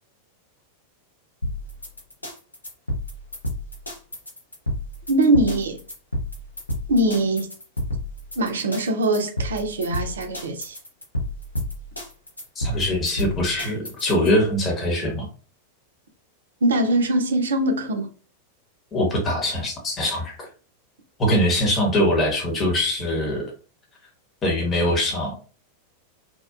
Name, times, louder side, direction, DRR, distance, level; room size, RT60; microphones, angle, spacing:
sound 1, 1.4-14.3, equal, 85° left, 0.8 m, -31 dB
voice 1, 5.1-5.8 6.9-7.5 8.4-10.8 16.6-18.1, right 1 dB, 65° right, 0.6 m, -22 dB
voice 2, 12.6-15.3 18.9-20.5 21.2-23.5 24.4-25.3, left 1 dB, 25° left, 0.9 m, -22 dB
2.7 x 2.2 x 2.4 m
figure-of-eight pair, 90°, 0 cm